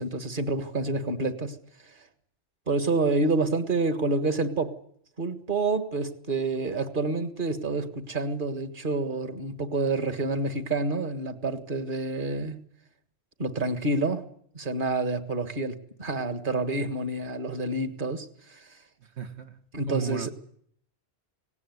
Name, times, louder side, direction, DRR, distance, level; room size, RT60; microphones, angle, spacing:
voice 1, 0.0-1.6 2.7-4.8 5.2-12.6 13.4-14.2 14.5-18.7 19.7-20.3, right 2 dB, 50° right, 1.9 m, -28 dB
voice 2, 19.0-19.6 19.9-20.3, right 8 dB, 85° right, 1.7 m, -35 dB
18.0 x 18.0 x 9.5 m
omnidirectional pair, 1.1 m